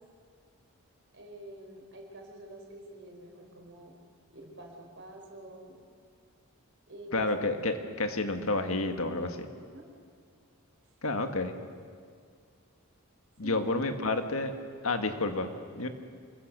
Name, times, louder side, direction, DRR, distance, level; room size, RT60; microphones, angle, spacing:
voice 1, 1.1-3.9 4.3-5.8 6.9-7.3 9.7-9.9 11.0-11.2 13.4-13.7, right 1 dB, 55° right, 1 dB, 5.2 m, -47 dB
voice 2, 7.1-9.5 11.0-11.6 13.4-14.5 14.8-15.9, left 2 dB, 70° left, 6 dB, 1.8 m, -30 dB
27.5 x 21.5 x 6.8 m, 2.1 s
head